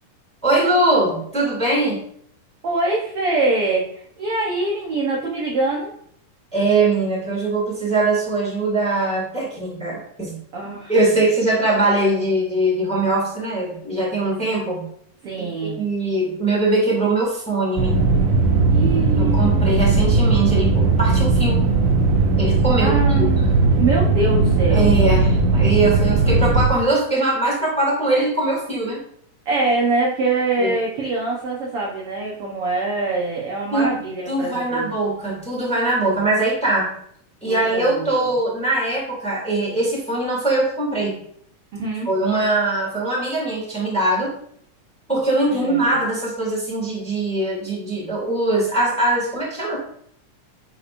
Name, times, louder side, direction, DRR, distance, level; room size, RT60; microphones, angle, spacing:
voice 1, 0.4-2.0 6.5-10.3 10.9-14.8 15.4-15.5 15.8-18.1 19.2-21.6 22.4-23.3 24.7-29.0 30.6-30.8 33.7-33.9 34.3-36.9 37.4-41.2 42.0-44.3 45.1-49.8, right 2 dB, 5° left, -4 dB, 1.5 m, -21 dB
voice 2, 2.6-5.9 10.5-10.9 15.2-15.8 18.7-19.8 22.8-23.5 23.8-24.9 29.4-34.9 37.5-38.1 41.7-42.1 45.5-45.9, right 3 dB, 75° right, -2 dB, 1.3 m, -24 dB
sound 1, 17.8-26.7, right 3 dB, 90° right, 2.6 m, -17 dB
8.5 x 4.5 x 2.5 m, 0.65 s
omnidirectional pair, 3.8 m